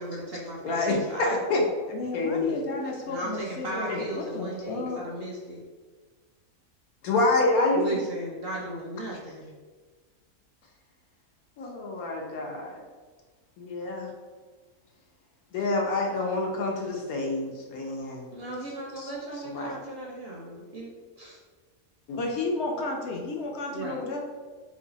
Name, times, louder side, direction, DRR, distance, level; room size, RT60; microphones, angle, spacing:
voice 1, 0.0-1.7 3.0-5.6 7.7-9.5 18.3-21.4 23.7-24.0, right 1 dB, 60° right, -2 dB, 0.7 m, -36 dB
voice 2, 0.6-2.7 7.0-7.8 11.6-12.8 13.6-14.1 15.5-18.2 19.0-19.1 19.4-19.7 22.1-22.2, left 2 dB, 90° left, 0 dB, 1.2 m, -27 dB
voice 3, 1.9-5.0 22.2-24.2, left 3 dB, 65° left, 0 dB, 0.7 m, -32 dB
3.2 x 2.6 x 3.9 m, 1.4 s
omnidirectional pair, 1.5 m